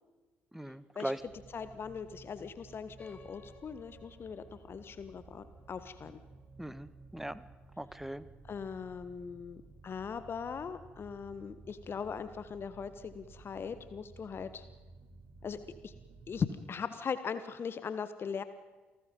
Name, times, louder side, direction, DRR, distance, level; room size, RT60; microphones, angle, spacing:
voice 1, 0.5-1.2 6.6-7.4 7.8-8.2, right 1 dB, 5° right, 16 dB, 1.5 m, -39 dB
sound 1, 1.2-16.4, right 3 dB, 55° right, 7.0 m, -55 dB
voice 2, 1.5-6.2 8.4-14.6 15.4-15.9 16.3-18.4, left 6 dB, 40° left, 12 dB, 1.4 m, -40 dB
sound 2, 3.0-7.9, left 3 dB, 25° left, 3.6 m, -61 dB
28.5 x 20.0 x 5.4 m, 1.2 s
figure-of-eight pair, 50°, 6 cm